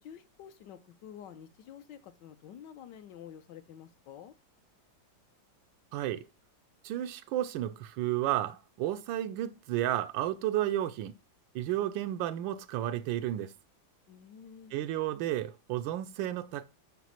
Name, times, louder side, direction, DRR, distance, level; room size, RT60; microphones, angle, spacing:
voice 1, 0.0-4.3 14.1-14.7, left 9 dB, 75° left, 1.3 m, -49 dB
voice 2, 5.9-6.2 6.8-11.1 11.5-13.5 14.7-16.7, right 13 dB, 85° right, 1.3 m, -32 dB
6.1 x 5.1 x 5.7 m
omnidirectional pair, 2.0 m